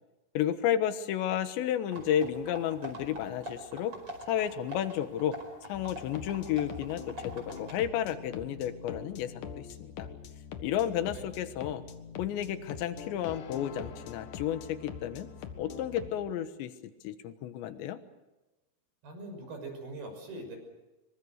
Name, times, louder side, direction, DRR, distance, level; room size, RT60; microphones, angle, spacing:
voice 1, 0.3-4.0 4.3-10.1 10.6-11.8 12.2-15.3 15.6-16.7 17.0-18.0, left 10 dB, 75° left, 10 dB, 3.4 m, -32 dB
sound 1, 1.9-7.7, equal, 30° right, 5.5 m, -44 dB
sound 2, 5.7-16.1, left 7 dB, 60° left, 2.4 m, -44 dB
voice 2, 19.0-20.6, right 2 dB, 55° right, 4 dB, 7.9 m, -42 dB
26.0 x 24.0 x 6.6 m, 1.1 s
omnidirectional pair, 5.4 m